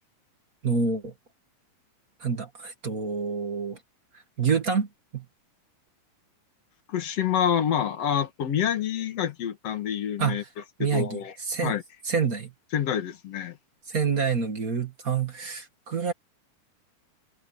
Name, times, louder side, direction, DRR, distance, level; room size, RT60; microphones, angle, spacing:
voice 1, 0.6-1.1 2.2-3.8 4.4-4.9 5.1-5.2 10.2-10.4 10.8-11.2 11.5-11.8 12.1-12.5 13.9-16.1, right 5 dB, 35° right, 1.7 m, -27 dB
voice 2, 6.9-10.4 10.8-11.3 11.6-11.8 12.7-13.6, left 9 dB, 55° left, 2.4 m, -27 dB
omnidirectional pair, 3.8 m